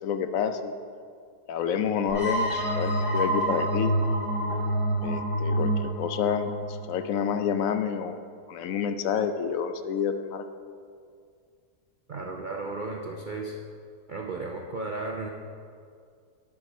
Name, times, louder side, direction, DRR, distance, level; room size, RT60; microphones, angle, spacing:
voice 1, 0.0-0.7 1.5-4.0 5.0-8.2 8.5-10.4, left 7 dB, 70° left, 9 dB, 0.9 m, -29 dB
sound 1, 2.1-7.6, right 1 dB, 35° left, 1.6 m, -27 dB
voice 2, 12.1-13.6 14.1-15.3, right 3 dB, 65° right, 0 dB, 0.4 m, -34 dB
10.5 x 4.8 x 6.2 m, 2.2 s
omnidirectional pair, 1.7 m